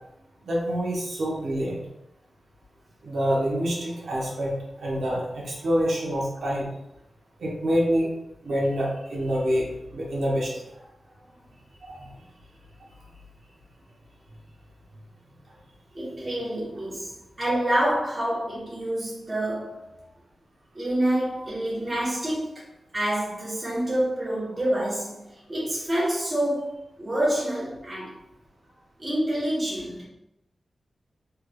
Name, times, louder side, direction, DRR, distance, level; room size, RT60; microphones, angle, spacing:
voice 1, 0.5-1.8 3.0-6.7 7.4-8.1 8.4-10.5 11.8-12.1, equal, 85° right, 1.0 m, -26 dB
voice 2, 15.9-20.0 20.7-22.5 22.9-28.2 29.0-30.0, right 1 dB, 25° right, 1.1 m, -27 dB
3.5 x 3.3 x 2.3 m
wide cardioid pair, 165°, 0 cm